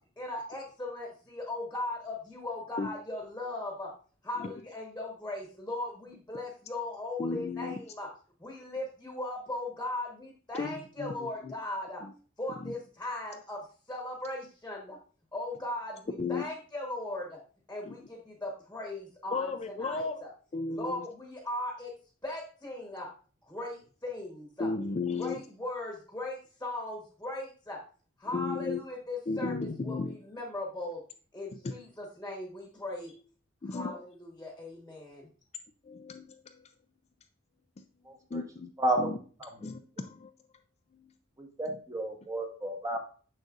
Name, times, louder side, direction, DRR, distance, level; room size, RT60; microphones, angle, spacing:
voice 1, 0.2-3.9 4.2-8.1 8.4-12.0 12.4-13.6 13.9-15.0 15.3-17.4 17.7-20.3 20.7-21.9 22.2-23.1 23.4-24.7 25.2-27.8 28.2-31.0 31.3-33.1 33.7-35.3, left 1 dB, 10° left, -1 dB, 1.2 m, -38 dB
voice 2, 7.2-7.8 10.6-11.5 12.0-12.1 12.6-12.7 16.2-16.4 17.8-18.0 19.3-20.2 20.5-21.1 24.6-25.4 28.3-28.8 29.3-30.2 31.6-31.7 33.6-34.0 35.8-36.7 37.8-37.9 38.3-38.7 39.0-39.2 39.6-40.3 40.9-41.1 41.7-41.8, left 4 dB, 30° left, 8 dB, 0.4 m, -35 dB
voice 3, 38.1-38.4 38.8-39.1 41.4-43.0, right 1 dB, 15° right, 2 dB, 1.1 m, -31 dB
6.5 x 6.4 x 2.5 m, 0.40 s
head